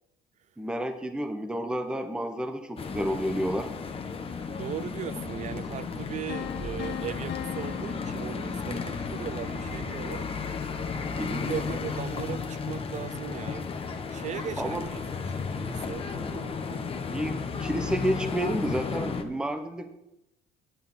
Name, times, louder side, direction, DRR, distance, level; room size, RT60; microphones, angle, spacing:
voice 1, 0.6-3.7 11.2-11.5 14.6-14.8 17.1-19.9, equal, 5° right, 0.8 m, -30 dB
sound 1, 2.8-19.2, left 5 dB, 35° left, 1.2 m, -34 dB
voice 2, 4.6-10.3 11.1-13.7 14.1-15.0 15.5-17.0, right 10 dB, 45° right, 0.5 m, -38 dB
sound 2, 6.3-9.2, left 12 dB, 75° left, 0.6 m, -40 dB
10.0 x 8.6 x 5.6 m
cardioid pair, 110°, 17 cm